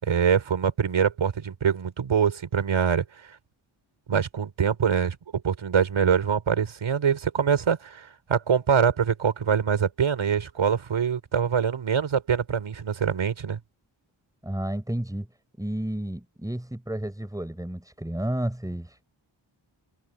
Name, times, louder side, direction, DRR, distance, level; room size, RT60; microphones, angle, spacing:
voice 1, 0.0-3.0 4.1-5.2 5.4-13.6, right 7 dB, 80° right, 5.2 m, -24 dB
voice 2, 14.4-15.3 15.6-19.1, right 1 dB, 5° right, 4.3 m, -31 dB
wide cardioid pair, 95°, 48 cm